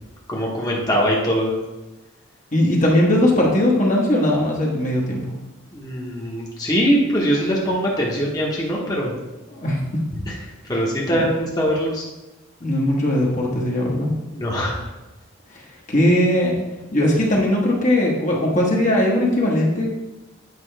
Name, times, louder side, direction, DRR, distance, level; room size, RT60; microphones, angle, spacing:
voice 1, 0.3-1.5 5.7-9.1 10.2-10.3 10.7-12.0 14.3-14.8, equal, 20° left, -3 dB, 1.2 m, -22 dB
voice 2, 2.5-5.3 9.5-9.8 11.1-11.2 12.6-14.1 15.5-15.6 15.9-16.6 16.9-19.9, left 1 dB, 35° left, -2 dB, 1.2 m, -19 dB
8.4 x 5.2 x 3.4 m, 1.0 s
head